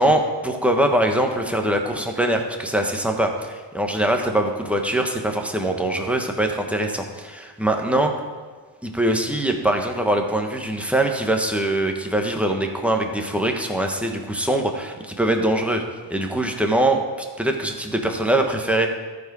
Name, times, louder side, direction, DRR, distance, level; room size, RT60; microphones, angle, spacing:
voice 1, 0.0-8.1 8.8-18.9, right 1 dB, 5° right, 3 dB, 1.2 m, -22 dB
13.5 x 4.8 x 4.8 m, 1.5 s
cardioid pair, 90°, 43 cm